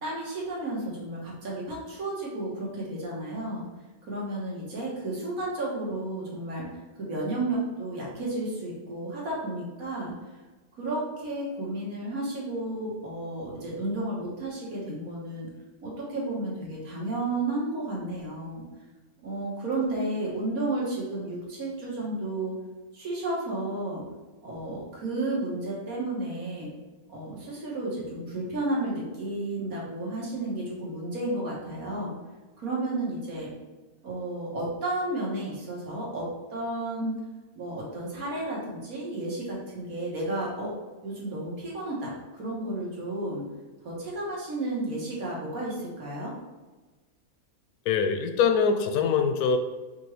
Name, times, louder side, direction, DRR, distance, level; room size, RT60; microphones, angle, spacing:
voice 1, 0.0-3.6 4.0-6.7 7.0-10.1 10.8-15.5 15.8-18.6 19.2-22.6 22.9-24.0 24.4-26.7 27.1-32.1 32.6-33.5 34.0-37.2 37.6-40.7 41.0-43.4 43.8-46.3, right 2 dB, 70° right, -5 dB, 1.7 m, -32 dB
voice 2, 47.9-49.6, left 6 dB, 90° left, 7 dB, 1.1 m, -23 dB
5.3 x 2.9 x 3.1 m, 1.2 s
omnidirectional pair, 1.5 m